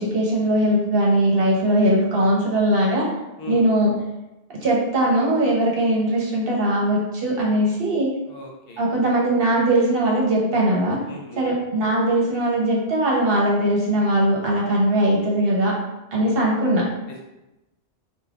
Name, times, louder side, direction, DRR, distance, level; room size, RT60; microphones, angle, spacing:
voice 1, 0.0-3.1 3.5-3.9 4.6-8.1 8.8-11.0 11.4-15.7 16.1-16.8, right 1 dB, 60° right, -4 dB, 1.1 m, -20 dB
voice 2, 3.4-3.7 8.3-8.9 11.1-11.5 17.1-17.2, left 2 dB, 65° left, -1 dB, 0.8 m, -39 dB
5.3 x 2.3 x 2.4 m, 0.98 s
omnidirectional pair, 1.1 m